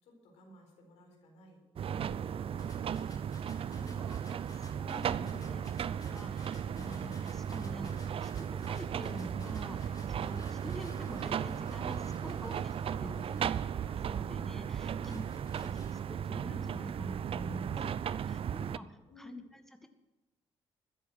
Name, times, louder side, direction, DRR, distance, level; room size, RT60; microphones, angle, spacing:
voice 1, 0.0-4.0 12.8-13.4 14.7-15.2 17.7-17.9 18.6-19.4, left 2 dB, 85° left, 1 dB, 4.4 m, -56 dB
sound 1, 1.8-18.8, right 8 dB, 60° right, 0.5 m, -36 dB
sound 2, 2.6-14.3 14.7-16.3, left 2 dB, 35° left, 4.0 m, -58 dB
voice 2, 4.0-5.7 6.0-12.7 13.0-13.3 13.8-15.2 15.6-17.8 18.3-18.9 19.2-19.9, left 1 dB, 5° left, 7 dB, 1.6 m, -47 dB
14.5 x 10.5 x 6.4 m, 1.1 s
supercardioid pair, 60°, 11 cm